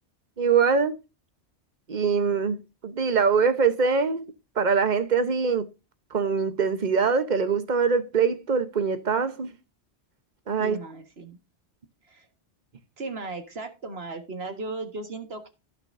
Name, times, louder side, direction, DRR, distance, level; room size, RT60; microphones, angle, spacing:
voice 1, 0.4-1.0 1.9-2.6 2.8-4.3 4.6-5.7 6.1-9.5 10.5-10.8, right 5 dB, 45° right, 1.1 m, -23 dB
voice 2, 10.6-11.4 12.1-12.3 13.0-15.5, right 3 dB, 60° right, 1.9 m, -36 dB
16.0 x 6.0 x 2.6 m
omnidirectional pair, 1.2 m